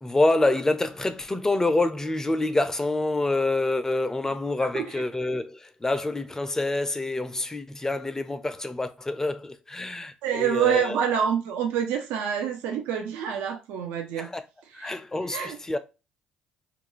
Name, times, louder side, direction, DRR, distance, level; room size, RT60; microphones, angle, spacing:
voice 1, 0.0-11.0 14.2-14.4 14.7-15.8, left 2 dB, 15° left, 0.5 m, -27 dB
voice 2, 10.2-14.3 14.8-15.0 15.3-15.6, right 8 dB, 75° right, 0.5 m, -27 dB
2.5 x 2.2 x 3.0 m
hypercardioid pair, 60°, 3 cm